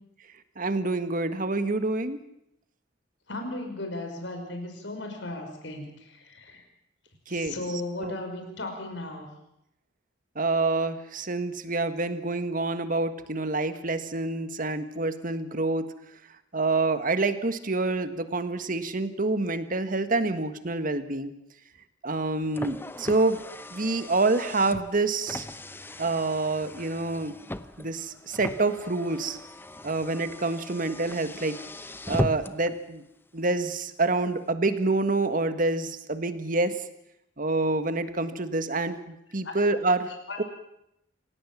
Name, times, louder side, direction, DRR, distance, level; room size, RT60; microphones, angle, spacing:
voice 1, 0.6-2.2 7.3-7.5 8.0-8.1 10.3-15.8 16.5-21.3 22.0-23.4 23.7-25.4 26.0-27.3 27.8-29.4 29.8-31.6 32.1-33.0 33.3-36.8 37.4-40.1 40.4-40.5, right 3 dB, 50° right, 10 dB, 1.7 m, -27 dB
voice 2, 3.3-6.6 7.3-9.3 39.4-39.6 40.3-40.4, left 2 dB, 90° left, 5 dB, 5.4 m, -36 dB
Car, 22.1-32.7, left 1 dB, 10° left, 0.7 m, -38 dB
27.5 x 17.0 x 7.4 m, 0.80 s
head